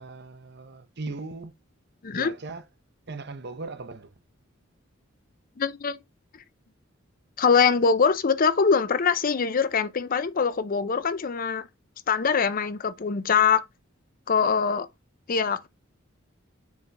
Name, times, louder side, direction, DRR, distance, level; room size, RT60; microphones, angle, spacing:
voice 1, 0.0-1.5 2.1-2.6 3.1-4.1, right 3 dB, 55° right, 0.8 m, -38 dB
voice 2, 5.6-6.0 7.4-11.7 12.1-13.6 14.3-14.9 15.3-15.7, left 6 dB, 45° left, 0.5 m, -23 dB
7.1 x 4.0 x 3.4 m
head